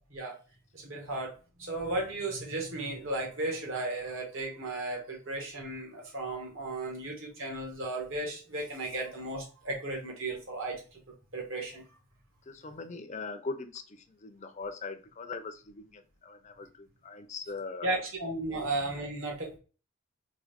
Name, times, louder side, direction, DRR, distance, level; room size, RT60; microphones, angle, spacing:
voice 1, 0.7-1.3 1.6-11.0 11.3-11.8 17.8-19.6, right 2 dB, 60° right, 0 dB, 1.6 m, -35 dB
voice 2, 12.5-18.0 18.5-18.7, left 4 dB, 30° left, 8 dB, 0.4 m, -41 dB
3.6 x 3.3 x 3.5 m, 0.36 s
head